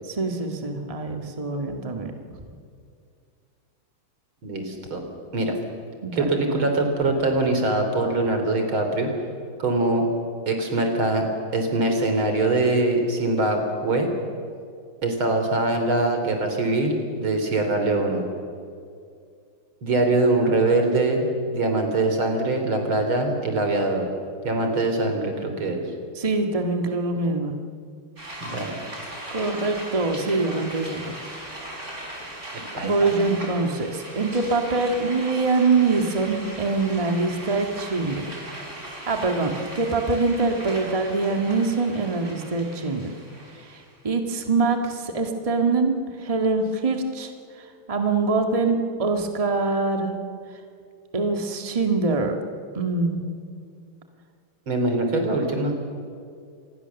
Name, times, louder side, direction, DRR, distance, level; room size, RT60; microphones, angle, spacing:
voice 1, 0.1-2.1 6.0-6.3 26.1-27.6 29.3-31.2 32.8-38.2 39.1-43.1 43.6-45.9 46.2-47.3 47.9-50.1 51.1-52.3 52.7-53.2, right 3 dB, 20° right, 4 dB, 1.7 m, -24 dB
voice 2, 4.4-5.0 5.3-5.5 6.1-9.1 9.6-10.0 10.5-11.3 11.5-14.1 15.0-18.2 19.8-24.0 24.4-25.8 28.4-28.8 32.7-33.1 54.7-55.7, right 2 dB, 75° right, 5 dB, 4.1 m, -23 dB
sound 1, 28.2-44.0, right 1 dB, 35° right, 5.1 m, -39 dB
26.5 x 20.0 x 7.1 m, 2.3 s
omnidirectional pair, 2.3 m